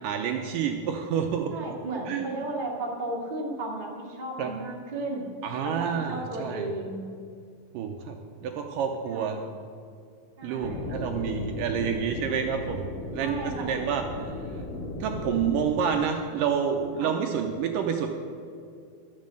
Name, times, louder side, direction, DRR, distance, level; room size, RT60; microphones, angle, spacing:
voice 1, 0.0-1.5 2.1-2.4 4.4-4.5 5.4-6.6 7.7-8.2 8.4-9.4 10.4-12.9 13.1-14.0 15.0-18.1, right 7 dB, 80° right, 4 dB, 2.0 m, -28 dB
voice 2, 1.5-5.3 5.6-7.1 9.1-9.4 10.4-11.2 13.2-13.8 17.0-17.1, right 2 dB, 55° right, -2 dB, 0.5 m, -34 dB
sound 1, 10.6-15.6, left 2 dB, 80° left, 3.4 m, -36 dB
12.5 x 7.5 x 7.5 m, 2.3 s
omnidirectional pair, 4.5 m